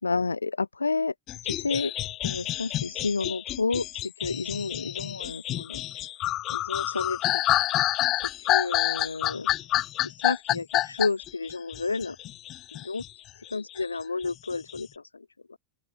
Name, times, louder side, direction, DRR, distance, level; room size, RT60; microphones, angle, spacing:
voice 1, 0.0-1.1 1.4-1.9 2.2-5.8 6.5-7.6 8.1-9.5 10.0-12.2 12.7-13.0 13.5-15.6, left 4 dB, 80° left, 5.9 m, -31 dB
sound 1, 1.3-13.1 13.5-14.8, left 14 dB, 35° left, 6.3 m, -28 dB
open air
figure-of-eight pair, 90°, 0 cm